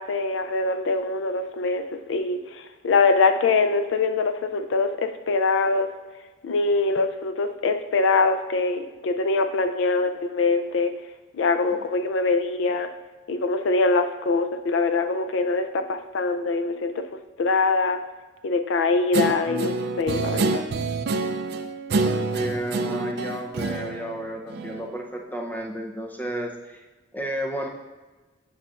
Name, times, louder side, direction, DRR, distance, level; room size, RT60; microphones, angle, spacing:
voice 1, 0.0-5.9 6.4-10.9 11.3-12.9 13.3-17.0 17.4-18.0 18.4-20.6, left 3 dB, 70° left, 8 dB, 0.4 m, -23 dB
Guitar, 19.1-24.9, right 3 dB, 55° right, 0.4 m, -27 dB
voice 2, 22.2-26.8 27.1-27.7, right 1 dB, 10° left, 1 dB, 0.6 m, -32 dB
8.3 x 6.2 x 2.4 m, 1.2 s
head